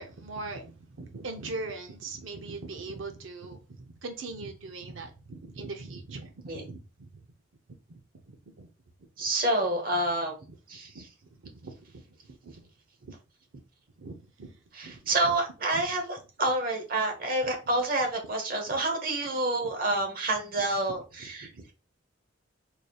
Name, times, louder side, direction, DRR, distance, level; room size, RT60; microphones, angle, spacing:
voice 1, 0.0-7.3 7.9-8.7 9.0-9.3 10.5-10.6 10.9-12.7 13.0-13.1 14.0-15.3 15.7-15.8 17.4-17.5 18.7-18.8 19.6-19.7 21.2-21.7, right 3 dB, 85° right, 0.6 m, -42 dB
voice 2, 9.2-10.3 10.7-10.9 14.8-21.5, right 2 dB, 50° right, 1.0 m, -28 dB
4.8 x 2.7 x 2.3 m
head